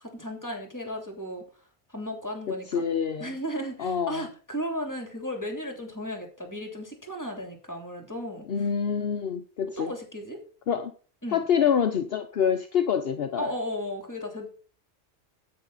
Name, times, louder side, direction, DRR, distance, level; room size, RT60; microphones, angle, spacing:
voice 1, 0.1-1.4 1.9-2.8 3.2-8.5 9.8-10.4 11.2-11.4 13.4-14.5, equal, 15° left, 2.9 m, -35 dB
voice 2, 2.5-3.3 3.8-4.3 8.5-9.9 10.7-10.9 11.3-13.5, left 7 dB, 60° left, 0.9 m, -26 dB
9.9 x 8.7 x 4.1 m
omnidirectional pair, 1.2 m